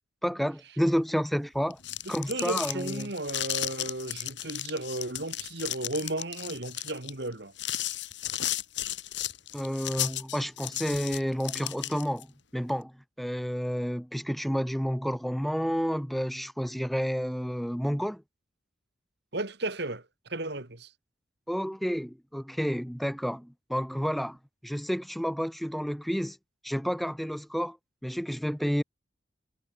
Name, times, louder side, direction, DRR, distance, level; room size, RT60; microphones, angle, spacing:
voice 1, 0.2-1.8 2.1-3.1 9.5-12.3 12.5-12.9 13.2-18.2 21.5-24.4 24.6-26.4 26.6-27.8 28.0-28.8, equal, ahead, 1.1 m, -30 dB
sound 1, 1.6-12.2, left 13 dB, 70° left, 2.9 m, -34 dB
voice 2, 2.0-7.5 19.3-20.0 20.3-20.9, right 2 dB, 60° right, 2.4 m, -34 dB
head